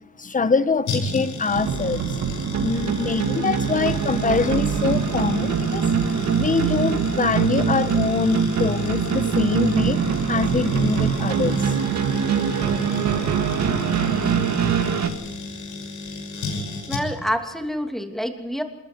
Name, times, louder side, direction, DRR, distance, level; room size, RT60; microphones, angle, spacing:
voice 1, 0.2-2.2 2.6-5.9 6.3-11.8, left 4 dB, 25° left, 13 dB, 1.3 m, -24 dB
sound 1, 0.9-17.4 17.6-17.7, left 3 dB, 75° left, 6.3 m, -34 dB
sound 2, 1.5-15.1, right 6 dB, 65° right, 2.1 m, -23 dB
voice 2, 16.9-18.6, equal, ahead, 4 dB, 2.9 m, -27 dB
26.5 x 21.0 x 4.7 m, 0.99 s
cardioid pair, 90°, 30 cm